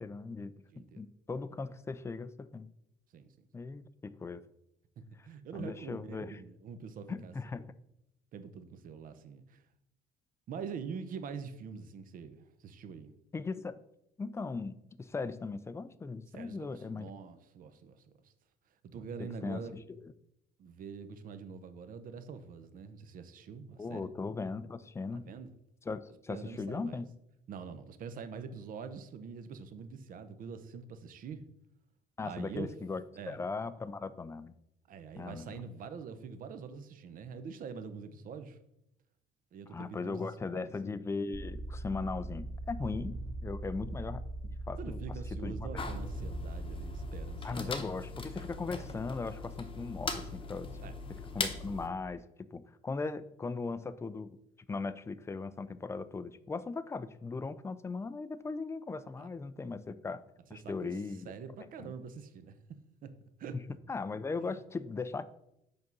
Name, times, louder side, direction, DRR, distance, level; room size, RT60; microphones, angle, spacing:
voice 1, 0.0-2.7 3.5-4.4 5.5-6.4 7.1-7.7 13.3-13.8 14.2-17.1 19.2-20.1 23.8-25.3 25.9-27.1 32.2-34.5 35.2-35.7 39.7-44.2 44.7-45.0 45.4-45.7 47.4-50.7 51.1-54.4 54.7-60.2 60.5-61.3 61.8-61.9 63.5-63.6 63.9-65.3, left 4 dB, 15° left, 15 dB, 0.3 m, -38 dB
voice 2, 3.1-3.5 5.2-7.3 8.3-9.6 10.5-13.1 16.3-18.0 18.9-19.7 20.6-24.1 25.1-25.5 26.3-27.0 27.5-31.5 32.2-32.7 33.2-33.4 34.9-38.6 39.5-40.7 44.8-47.7 48.0-48.3 50.8-50.9 59.2-59.3 60.6-60.9 61.2-63.6 64.4-64.5, right 6 dB, 55° right, 10 dB, 0.7 m, -45 dB
sound 1, 41.3-47.3, right 1 dB, 30° right, 2.0 m, -40 dB
sound 2, 45.8-51.9, left 4 dB, 30° left, 0.8 m, -40 dB
5.2 x 4.0 x 5.9 m, 0.81 s
cardioid pair, 110°, 17 cm